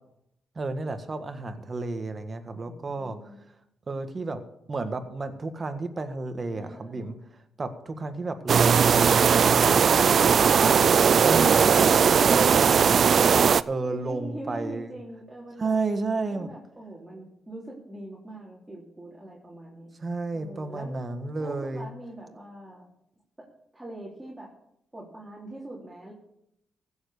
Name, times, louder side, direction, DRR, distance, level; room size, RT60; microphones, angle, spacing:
voice 1, 0.5-3.2 3.9-4.4 4.7-7.1 7.6-10.8 11.2-12.0 12.3-14.9 15.6-16.5 20.0-21.9, right 3 dB, 40° right, 8 dB, 1.6 m, -32 dB
voice 2, 2.5-3.4 6.6-7.1 13.8-15.8 16.3-19.9 20.3-21.0 21.4-22.8 23.7-24.5 24.9-26.1, right 1 dB, 15° right, -4 dB, 3.6 m, -42 dB
sound 1, 8.5-13.6, right 7 dB, 60° right, 0.4 m, -19 dB
15.5 x 7.2 x 6.7 m, 0.77 s
cardioid pair, 80°, 0 cm